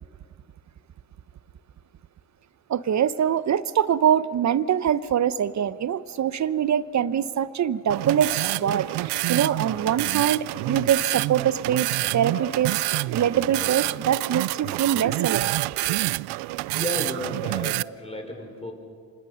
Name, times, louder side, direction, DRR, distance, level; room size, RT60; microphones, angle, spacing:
voice 1, 2.7-11.9 12.1-12.7 13.1-15.6, right 9 dB, 45° right, 16 dB, 0.9 m, -24 dB
sound 1, 7.9-17.8, right 21 dB, 80° right, 0.5 m, -27 dB
voice 2, 16.8-18.7, left 1 dB, 15° left, 3 dB, 5.6 m, -33 dB
28.5 x 25.5 x 5.7 m, 2.4 s
supercardioid pair, 75°, 40 cm